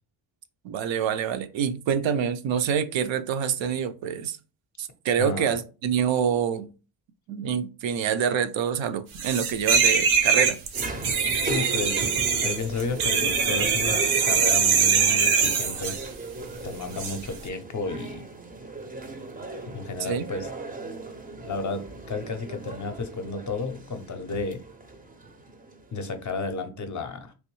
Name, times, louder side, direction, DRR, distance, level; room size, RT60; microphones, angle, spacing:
voice 1, 0.6-4.4 4.8-6.7 7.3-10.6 20.0-20.3, right 8 dB, 70° right, 0.5 m, -26 dB
voice 2, 5.2-5.5 11.4-12.1 12.4-16.0 16.6-18.2 19.7-20.5 21.4-24.6 25.9-27.3, left 3 dB, 40° left, 0.5 m, -32 dB
sound 1, 9.2-16.1 17.0-17.2, right 6 dB, 90° right, 0.9 m, -23 dB
sound 2, 10.7-26.3, right 3 dB, 20° right, 0.5 m, -38 dB
3.1 x 3.0 x 3.1 m
cardioid pair, 120°, 48 cm